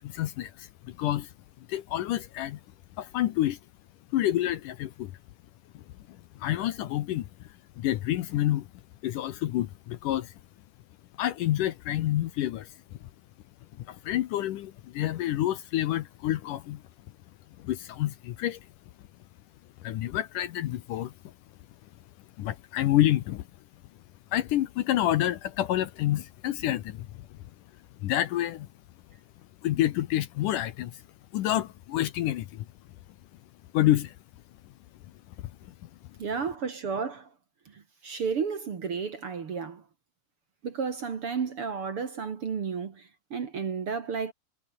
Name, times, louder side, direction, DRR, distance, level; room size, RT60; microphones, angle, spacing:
voice 1, 0.0-1.3 1.7-2.6 3.0-3.6 4.1-5.1 5.7-8.7 9.0-10.4 11.2-13.1 13.7-16.8 17.6-18.7 19.8-21.3 22.4-23.5 24.3-27.4 28.0-28.7 29.6-31.0 31.3-32.7 33.7-34.2 35.4-35.9, left 13 dB, 70° left, 2.3 m, -28 dB
voice 2, 36.2-37.3 37.7-39.8 40.6-44.3, right 6 dB, 45° right, 2.3 m, -32 dB
omnidirectional pair, 4.3 m